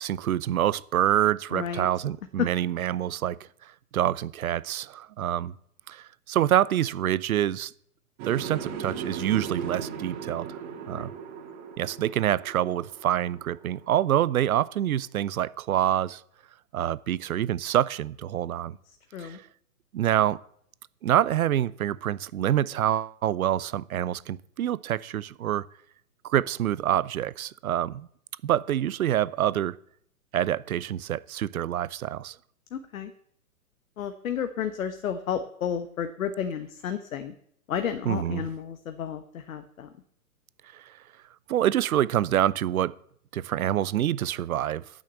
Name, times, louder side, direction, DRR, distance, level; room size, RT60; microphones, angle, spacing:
voice 1, 0.0-3.4 3.9-5.5 5.9-7.7 8.2-10.6 10.9-11.1 11.8-16.2 16.7-18.8 19.2-19.4 19.9-20.4 21.0-25.7 26.2-28.1 28.4-29.8 30.3-32.3 38.0-38.5 40.7-40.9 41.5-42.9 43.3-44.8, right 11 dB, 70° right, 20 dB, 0.7 m, -26 dB
voice 2, 1.5-1.9 2.4-2.5 10.9-11.1 19.1-19.4 32.7-33.1 34.0-37.3 37.7-39.9, left 8 dB, 60° left, 8 dB, 1.2 m, -32 dB
sound 1, 8.2-14.2, right 6 dB, 30° right, 2.1 m, -38 dB
9.0 x 6.5 x 8.2 m, 0.65 s
hypercardioid pair, 145°, 45 cm